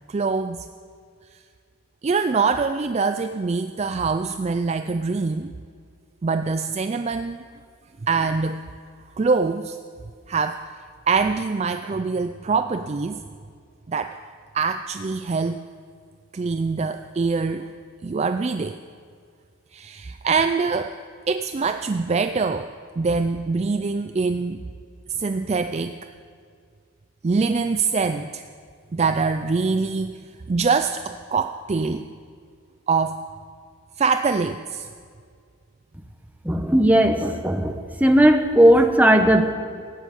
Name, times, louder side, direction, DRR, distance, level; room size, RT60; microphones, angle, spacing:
voice 1, 0.1-0.7 2.0-5.5 6.2-7.4 8.0-8.7 9.2-9.8 10.3-10.7 11.1-13.2 13.9-14.2 14.5-15.6 16.3-17.7 18.0-18.8 19.7-20.9 21.3-24.6 25.1-26.0 27.2-28.5 28.9-30.2 30.5-32.1 32.9-33.2 34.0-34.9, right 4 dB, 30° right, 9 dB, 0.3 m, -24 dB
voice 2, 36.4-39.5, right 1 dB, 5° right, 5 dB, 0.9 m, -17 dB
16.0 x 8.4 x 9.0 m, 2.2 s
head